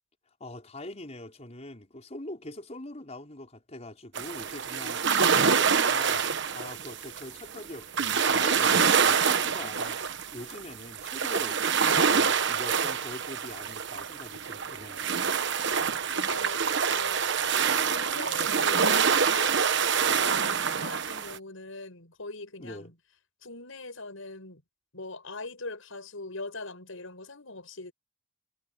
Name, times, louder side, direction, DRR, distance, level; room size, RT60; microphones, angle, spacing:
voice 1, 0.4-5.1 5.3-10.0 10.3-11.6 12.1-15.1 22.6-22.9, left 1 dB, 35° left, 5.1 m, -43 dB
sound 1, 4.1-21.4, right 6 dB, 60° right, 1.2 m, -26 dB
voice 2, 16.1-17.2 17.8-22.9 23.4-24.6 24.9-27.9, left 2 dB, 80° left, 6.4 m, -41 dB
head